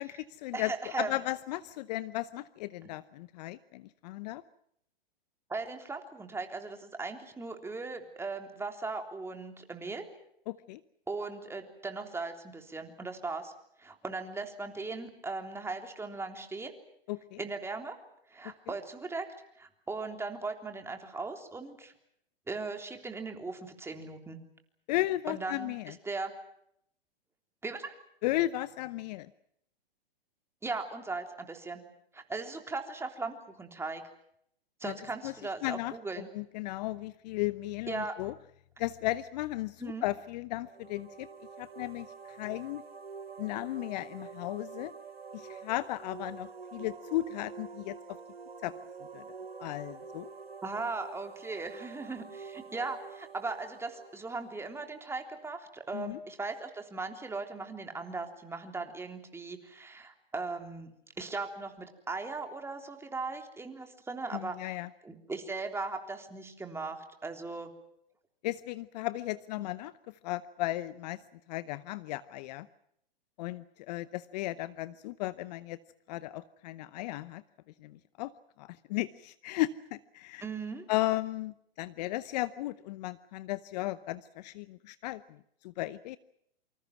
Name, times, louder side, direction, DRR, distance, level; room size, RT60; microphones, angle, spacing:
voice 1, 0.0-4.4 10.5-10.8 17.1-17.4 24.9-25.9 28.2-29.3 34.8-34.9 35.2-35.3 35.6-35.9 36.3-38.3 38.8-41.3 41.6-42.8 43.4-44.9 45.3-48.0 48.6-48.7 49.1-49.2 49.6-50.3 55.9-56.2 64.3-64.9 68.4-71.2 71.5-72.7 73.4-75.8 76.1-77.4 77.8-78.3 78.6-80.4 80.9-85.4 85.6-86.2, left 16 dB, 45° left, 16 dB, 0.9 m, -35 dB
voice 2, 0.5-1.2 5.5-10.1 11.1-13.5 13.8-16.7 17.4-18.0 18.3-19.3 19.6-21.9 22.5-24.4 25.3-26.3 27.6-27.9 30.6-31.8 32.1-34.0 34.8-36.3 37.9-38.1 39.8-40.0 50.6-60.9 61.2-64.8 65.0-67.7 80.4-80.9, right 3 dB, 10° right, 4 dB, 3.5 m, -38 dB
sound 1, 40.6-55.2, right 5 dB, 90° right, 1.8 m, -47 dB
28.0 x 25.5 x 6.0 m, 0.74 s
hypercardioid pair, 115°, 30 cm